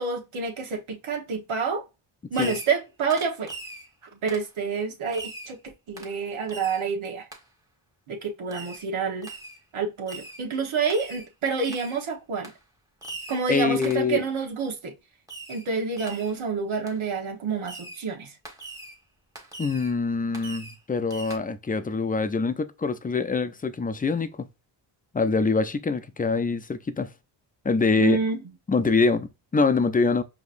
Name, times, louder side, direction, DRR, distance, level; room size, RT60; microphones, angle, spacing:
voice 1, 0.0-1.8 2.3-3.5 4.2-5.6 5.9-7.3 8.1-9.3 9.7-12.5 13.3-14.9 15.5-18.3 28.0-28.4, right 5 dB, 70° right, 1.3 m, -28 dB
Fireworks, 2.3-2.8 3.1-3.9 4.3-4.5 5.1-5.5 6.0-6.2 6.5-6.8 7.3-7.4 8.5-8.9 9.2-9.6 10.1-10.4 10.9-11.3 11.6-12.0 12.4-12.6 13.0-13.4 13.8-14.1 15.3-15.7 16.0-16.4 16.9-17.0 17.6-18.0 18.4-19.0 19.3-19.9 20.3-20.8 21.1-21.4, right 2 dB, 5° right, 1.4 m, -41 dB
voice 2, 13.5-14.2 19.6-24.5 25.1-27.1 27.6-28.2 28.7-30.2, left 4 dB, 20° left, 0.5 m, -24 dB
4.9 x 3.0 x 2.5 m
cardioid pair, 60°, 49 cm